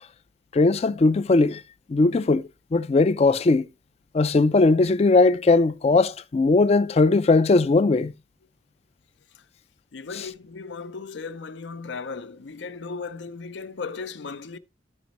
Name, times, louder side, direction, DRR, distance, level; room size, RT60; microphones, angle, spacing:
voice 1, 0.5-1.6 1.9-2.4 2.7-3.7 4.1-8.1, left 3 dB, 35° left, 0.3 m, -19 dB
voice 2, 9.9-14.6, left 4 dB, 75° left, 0.6 m, -36 dB
13.0 x 5.1 x 2.9 m
head